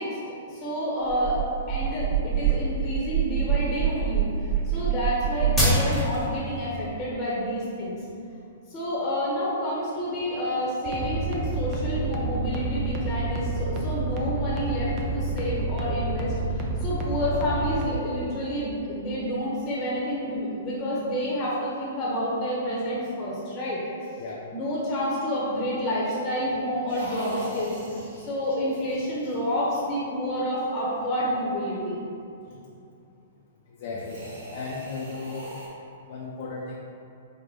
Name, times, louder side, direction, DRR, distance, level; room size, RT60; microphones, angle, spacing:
voice 1, 0.0-1.4 1.7-7.9 8.7-24.1 24.5-27.7 28.2-32.0, equal, 30° left, -6 dB, 0.7 m, -29 dB
sound 1, 1.1-6.2, right 5 dB, 5° left, 1.0 m, -25 dB
sound 2, 10.9-17.8, right 3 dB, 30° right, 0.4 m, -29 dB
sound 3, 26.9-30.0 33.8-35.7, right 1 dB, 70° right, 1.3 m, -41 dB
voice 2, 33.8-34.2 34.5-35.6 36.1-36.8, left 3 dB, 55° left, -3 dB, 0.4 m, -35 dB
4.5 x 2.1 x 3.2 m, 2.7 s
figure-of-eight pair, 115°, 0 cm